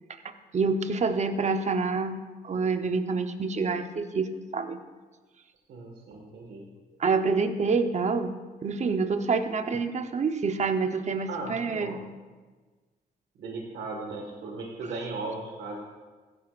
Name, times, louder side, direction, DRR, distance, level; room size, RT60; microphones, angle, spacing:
voice 1, 0.2-4.8 7.0-8.3 8.6-12.0, right 4 dB, 40° right, 7 dB, 0.9 m, -27 dB
voice 2, 5.7-6.7 11.3-12.0 13.4-15.8, right 3 dB, 80° right, 0 dB, 1.8 m, -37 dB
15.5 x 11.0 x 2.5 m, 1.3 s
cardioid pair, 85°, 18 cm